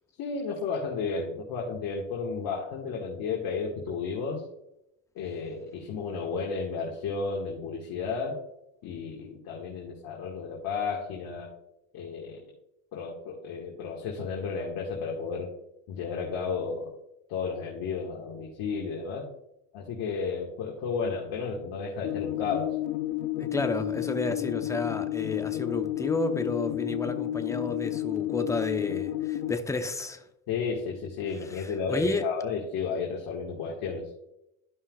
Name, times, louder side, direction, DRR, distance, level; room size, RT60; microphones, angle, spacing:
voice 1, 0.2-4.4 5.2-8.4 8.8-11.5 11.9-12.4 12.9-15.5 15.9-16.9 17.3-19.3 19.7-22.7 30.5-34.0, left 5 dB, 55° left, -2 dB, 1.9 m, -33 dB
sound 1, 22.0-29.5, left 14 dB, 70° left, 0.6 m, -31 dB
voice 2, 23.4-30.2 31.5-32.3, left 3 dB, 5° left, 6 dB, 0.9 m, -31 dB
13.0 x 5.5 x 2.4 m, 0.84 s
hypercardioid pair, 80°, 43 cm